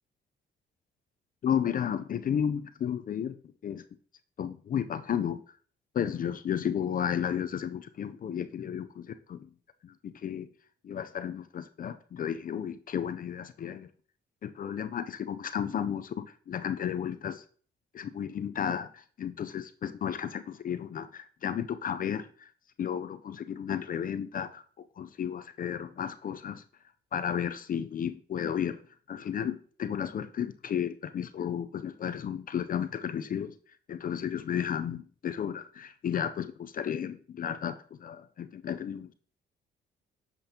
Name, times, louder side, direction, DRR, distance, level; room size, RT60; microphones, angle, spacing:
voice 1, 1.4-3.4 3.6-3.8 4.4-5.4 5.9-9.5 9.8-10.5 10.8-13.9 14.4-17.4 17.9-22.5 22.8-24.6 25.0-26.6 27.1-28.8 29.1-33.6 33.9-39.1, left 8 dB, 45° left, 11 dB, 0.5 m, -33 dB
8.0 x 5.2 x 2.8 m, 0.44 s
cardioid pair, 90°, 20 cm